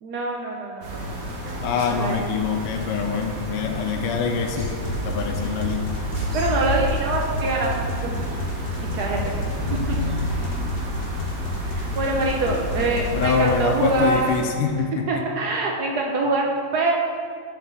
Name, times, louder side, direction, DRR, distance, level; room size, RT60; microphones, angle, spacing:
voice 1, 0.0-2.2 6.3-7.9 8.9-9.2 9.7-10.0 10.4-10.6 11.7-14.3 15.1-16.9, right 2 dB, 75° right, -1 dB, 0.9 m, -25 dB
sound 1, 0.8-14.4, right 1 dB, 50° right, 1.3 m, -32 dB
voice 2, 1.6-4.8 5.0-5.9 13.1-15.2, left 5 dB, 85° left, 4 dB, 1.5 m, -25 dB
sound 2, 4.6-13.5, left 3 dB, 70° left, 1.3 m, -31 dB
sound 3, 5.5-13.1, equal, 35° left, 1.2 m, -32 dB
5.9 x 5.0 x 5.4 m, 2.1 s
omnidirectional pair, 2.4 m